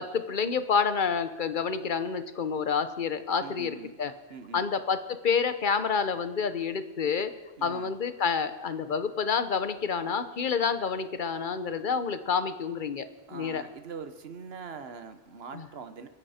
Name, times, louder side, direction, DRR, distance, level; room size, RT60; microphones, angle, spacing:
voice 1, 0.0-4.1 4.5-7.3 7.6-13.6 15.5-15.7, left 6 dB, 50° left, 11 dB, 1.1 m, -28 dB
voice 2, 3.4-3.9 4.3-4.7 7.6-7.9 13.3-16.1, right 5 dB, 70° right, 9 dB, 1.3 m, -43 dB
30.0 x 10.5 x 4.3 m, 1.2 s
omnidirectional pair, 1.1 m